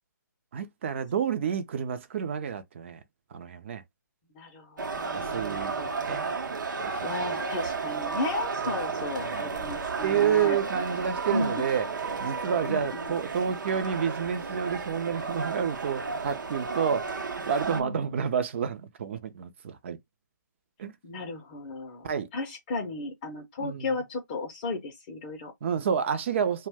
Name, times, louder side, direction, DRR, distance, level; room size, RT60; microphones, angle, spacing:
voice 1, 0.5-3.0 3.3-3.8 5.1-5.7 6.0-6.3 6.8-7.3 8.6-9.7 10.0-11.9 12.2-20.0 20.8-20.9 22.0-22.3 23.6-23.9 25.6-26.7, right 7 dB, 40° right, 0.5 m, -29 dB
voice 2, 4.3-6.4 7.0-10.6 11.3-11.7 12.6-13.1 17.7-18.3 21.0-25.5, left 3 dB, 25° left, 0.5 m, -35 dB
sound 1, 4.8-17.8, right 4 dB, 70° right, 0.7 m, -33 dB
2.5 x 2.1 x 3.4 m
figure-of-eight pair, 145°, 10 cm